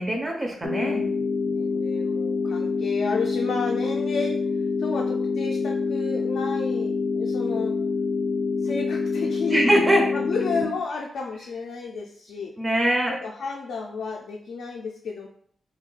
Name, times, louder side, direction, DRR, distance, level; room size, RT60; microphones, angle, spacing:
voice 1, 0.0-1.0 9.5-10.0 12.6-13.1, right 1 dB, 20° right, 1 dB, 0.4 m, -22 dB
sound 1, 0.6-10.6, left 4 dB, 30° left, 0.6 m, -26 dB
voice 2, 0.9-4.4 4.8-7.8 8.6-9.6 10.1-12.5 13.1-15.3, left 4 dB, 75° left, 0 dB, 0.3 m, -32 dB
2.4 x 2.2 x 3.8 m, 0.63 s
wide cardioid pair, 150°, 0 cm